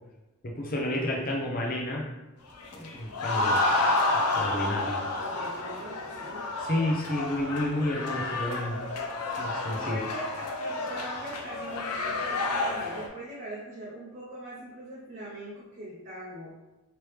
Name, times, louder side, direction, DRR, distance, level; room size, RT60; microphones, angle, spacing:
voice 1, 0.4-2.1 2.7-3.6 4.3-5.0 6.6-8.8 9.4-10.0, left 1 dB, 40° left, -1 dB, 0.6 m, -30 dB
rowdy crowd, 2.6-13.1, left 2 dB, 85° left, 0.5 m, -30 dB
voice 2, 3.6-4.2 5.2-6.5 9.8-16.5, right 1 dB, 35° right, -8 dB, 0.6 m, -42 dB
3.3 x 2.9 x 3.2 m, 1.0 s
head